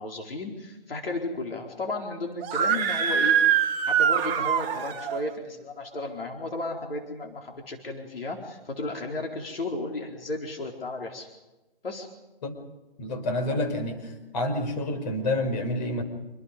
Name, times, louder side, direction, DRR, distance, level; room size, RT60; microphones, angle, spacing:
voice 1, 0.0-3.4 3.8-11.3 11.8-12.1, left 2 dB, 75° left, 1 dB, 4.4 m, -34 dB
Screaming, 2.4-5.2, right 8 dB, 15° right, 1.2 m, -23 dB
voice 2, 13.0-16.0, left 1 dB, 45° left, 5 dB, 5.9 m, -28 dB
27.5 x 26.0 x 5.3 m, 1.1 s
hypercardioid pair, 150°, 29 cm